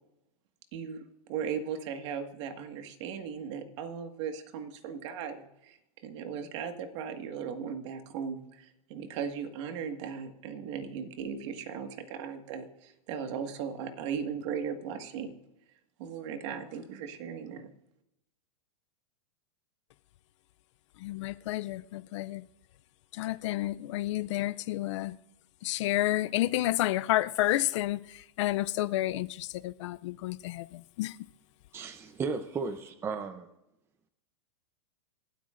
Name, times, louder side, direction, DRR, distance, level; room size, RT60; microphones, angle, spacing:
voice 1, 0.7-15.4 16.0-17.7, right 7 dB, 50° right, 1.7 m, -37 dB
voice 2, 21.0-22.4 23.1-25.2 25.6-31.2, left 16 dB, 50° left, 0.4 m, -30 dB
voice 3, 31.7-33.5, right 4 dB, 15° right, 0.6 m, -35 dB
27.5 x 13.0 x 2.5 m
supercardioid pair, 150°, 19 cm